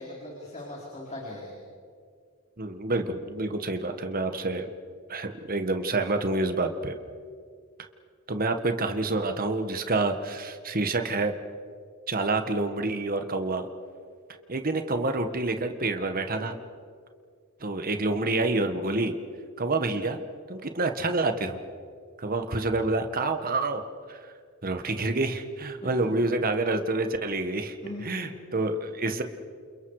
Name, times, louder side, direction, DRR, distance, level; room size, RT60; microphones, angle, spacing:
voice 1, 0.0-1.6 25.8-26.1 27.8-28.3, left 1 dB, 30° left, -4 dB, 4.5 m, -40 dB
voice 2, 2.6-4.7 5.1-7.0 8.3-11.3 12.1-13.7 14.5-16.6 17.6-19.1 19.6-20.2 20.5-21.6 22.2-23.8 24.1-24.2 24.6-29.2, right 2 dB, 40° right, 7 dB, 1.6 m, -28 dB
29.0 x 29.0 x 5.0 m, 2.2 s
head